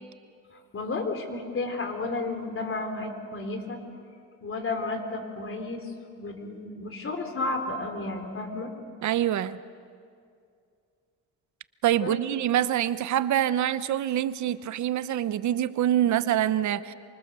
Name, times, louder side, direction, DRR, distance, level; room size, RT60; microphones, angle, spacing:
voice 1, 0.5-3.8 4.4-8.7 11.9-12.2, left 3 dB, 45° left, 5 dB, 4.2 m, -32 dB
voice 2, 9.0-9.6 11.8-16.9, right 11 dB, 70° right, 14 dB, 0.9 m, -25 dB
28.5 x 26.0 x 6.9 m, 2.3 s
cardioid pair, 90°, 30 cm